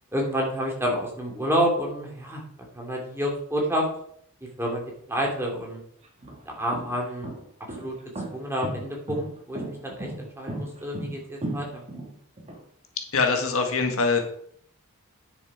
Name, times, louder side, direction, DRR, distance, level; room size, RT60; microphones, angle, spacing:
voice 1, 0.1-2.4 2.7-3.9 4.6-4.8 5.1-5.8 6.5-7.3 7.8-7.9 8.3-11.8, equal, 10° right, -1 dB, 2.7 m, -28 dB
sound 1, 6.0-12.6, right 1 dB, 30° right, 2.0 m, -35 dB
voice 2, 13.0-14.2, left 4 dB, 65° left, 3 dB, 1.8 m, -23 dB
9.8 x 6.9 x 5.0 m, 0.66 s
head